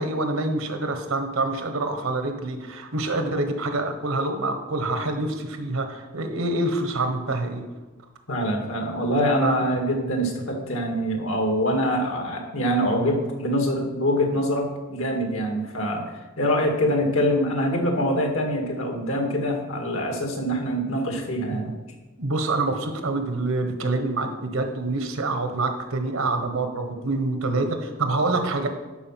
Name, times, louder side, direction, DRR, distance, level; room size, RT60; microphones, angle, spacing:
voice 1, 0.0-7.6 9.4-9.8 21.5-21.7 22.2-28.7, right 2 dB, 75° right, 6 dB, 1.2 m, -26 dB
voice 2, 8.3-21.7, equal, 70° left, 2 dB, 1.9 m, -24 dB
12.0 x 4.9 x 5.9 m, 1.2 s
head